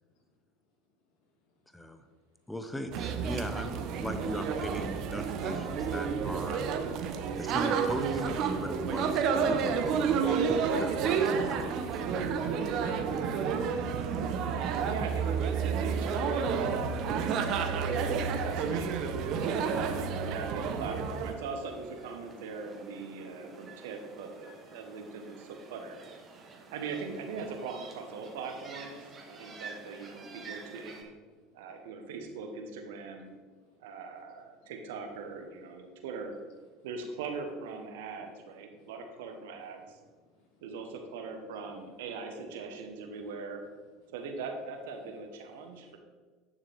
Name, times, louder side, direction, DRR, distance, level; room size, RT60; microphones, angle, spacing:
voice 1, 1.7-2.1 2.5-6.7 7.4-12.3, equal, 5° left, 8 dB, 0.8 m, -39 dB
sound 1, 2.9-21.3, right 6 dB, 55° right, 0.9 m, -30 dB
voice 2, 14.9-19.6 20.2-26.0 26.4-31.1 31.5-33.3 33.8-36.3 36.8-40.0 40.6-43.6 44.1-46.0, right 4 dB, 75° right, 4 dB, 1.3 m, -41 dB
sound 2, 18.0-31.0, right 4 dB, 35° right, 1.6 m, -50 dB
voice 3, 29.1-29.6 31.4-31.9 33.6-33.9 34.3-34.7 38.7-38.9 40.0-40.6 45.6-46.0, left 3 dB, 65° left, 1 dB, 2.3 m, -61 dB
10.0 x 6.6 x 3.6 m, 1.5 s
hypercardioid pair, 80°, 0 cm